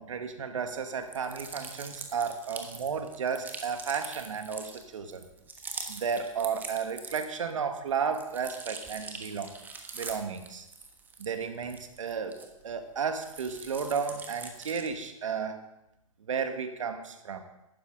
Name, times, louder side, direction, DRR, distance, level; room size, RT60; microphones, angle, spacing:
voice 1, 0.0-5.3 5.9-9.5 9.9-10.7 11.2-12.4 12.6-15.6 16.2-17.4, right 6 dB, 65° right, 7 dB, 1.8 m, -33 dB
sound 1, 1.0-7.5 7.9-12.8 13.1-15.0, right 4 dB, 10° right, 1.3 m, -43 dB
17.5 x 12.5 x 3.8 m, 0.87 s
figure-of-eight pair, 120°, 18 cm